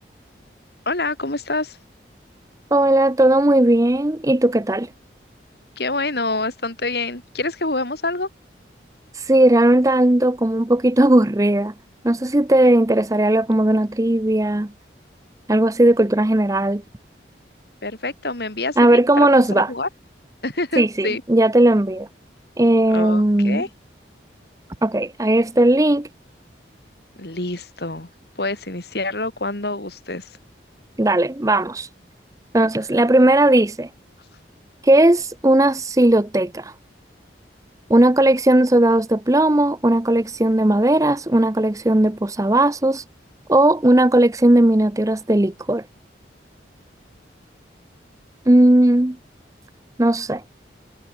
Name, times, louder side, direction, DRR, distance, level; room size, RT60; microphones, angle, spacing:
voice 1, 0.9-1.8 5.8-8.3 17.8-19.9 20.4-21.2 22.9-23.7 27.2-28.1 28.4-30.3, left 2 dB, 60° left, 2.9 m, -26 dB
voice 2, 2.7-4.9 9.2-11.7 12.0-14.7 15.5-16.8 18.8-19.7 20.8-22.1 22.6-23.6 24.8-26.1 31.0-31.9 32.5-33.9 34.8-36.7 37.9-43.0 43.5-45.8 48.5-49.2 50.0-50.4, right 1 dB, 20° right, 0.6 m, -17 dB
head